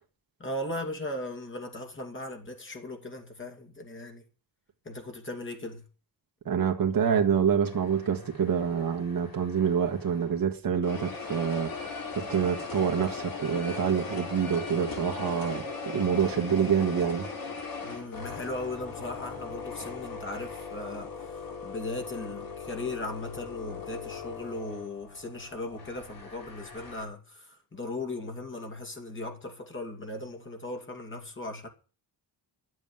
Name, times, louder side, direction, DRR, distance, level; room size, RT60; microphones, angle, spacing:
voice 1, 0.4-4.2 4.8-5.8 17.8-31.7, left 2 dB, 30° left, 2.6 m, -38 dB
voice 2, 6.4-17.3, right 7 dB, 55° right, 1.7 m, -27 dB
sound 1, 7.6-10.4 10.8-27.0, left 4 dB, 50° left, 3.3 m, -39 dB
11.5 x 7.7 x 9.0 m
wide cardioid pair, 150°, 42 cm